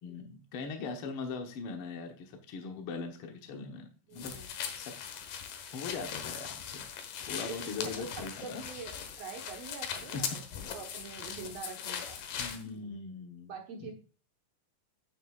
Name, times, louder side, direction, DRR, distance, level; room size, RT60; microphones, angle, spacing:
voice 1, 0.0-4.4 4.7-5.0 5.7-6.8 7.3-8.6 10.1-10.5 12.4-13.5 13.8-13.9, left 4 dB, 60° left, 3 dB, 1.6 m, -40 dB
voice 2, 4.1-4.5 7.3-7.6 7.8-12.2 12.6-12.7 13.5-13.9, right 5 dB, 60° right, 3 dB, 2.1 m, -45 dB
sound 1, 4.2-12.6, left 8 dB, 90° left, 2.9 m, -40 dB
9.4 x 9.3 x 2.4 m, 0.36 s
omnidirectional pair, 3.7 m